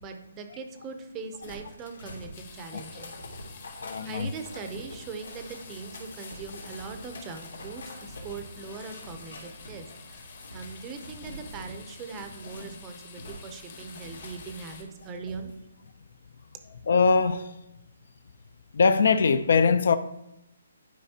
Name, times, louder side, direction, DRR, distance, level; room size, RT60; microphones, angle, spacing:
voice 1, 0.0-3.2 4.0-10.3 10.5-15.5, right 5 dB, 15° right, 0.6 m, -41 dB
sound 1, 1.4-12.8 13.1-15.5 15.9-16.0, left 1 dB, 90° left, 2.6 m, -45 dB
sound 2, 2.3-14.8, left 5 dB, 40° left, 1.1 m, -49 dB
voice 2, 3.8-4.3 16.9-17.5 18.7-20.0, left 5 dB, 55° left, 0.4 m, -22 dB
11.5 x 4.9 x 2.8 m
hypercardioid pair, 170°, 0 cm